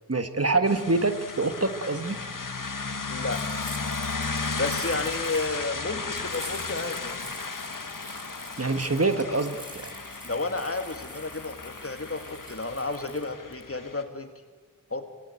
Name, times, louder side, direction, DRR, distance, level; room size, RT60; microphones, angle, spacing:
voice 1, 0.1-2.2 8.6-9.9, right 3 dB, 45° right, 9 dB, 1.6 m, -25 dB
sound 1, 0.7-14.0, left 4 dB, 70° left, 1.7 m, -35 dB
voice 2, 3.1-3.6 4.6-7.2 10.2-14.3 14.9-15.0, left 3 dB, 45° left, 7 dB, 2.4 m, -32 dB
sound 2, 3.3-5.6 6.1-13.6, right 1 dB, 15° right, 3.1 m, -46 dB
25.5 x 18.5 x 9.1 m, 1.4 s
wide cardioid pair, 50°, 33 cm